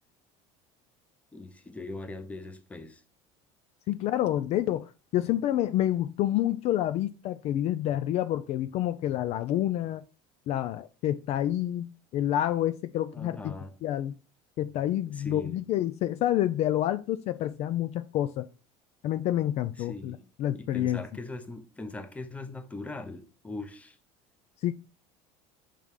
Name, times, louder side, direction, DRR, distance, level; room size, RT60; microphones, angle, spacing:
voice 1, 1.3-3.0 13.1-13.7 15.1-15.6 19.8-20.3 20.5-24.0, left 2 dB, 10° left, 0.7 m, -40 dB
voice 2, 3.9-10.0 10.5-14.1 14.6-18.5 19.0-21.0 24.6-24.7, left 12 dB, 50° left, 0.4 m, -28 dB
5.4 x 3.7 x 4.7 m
cardioid pair, 135°, 14 cm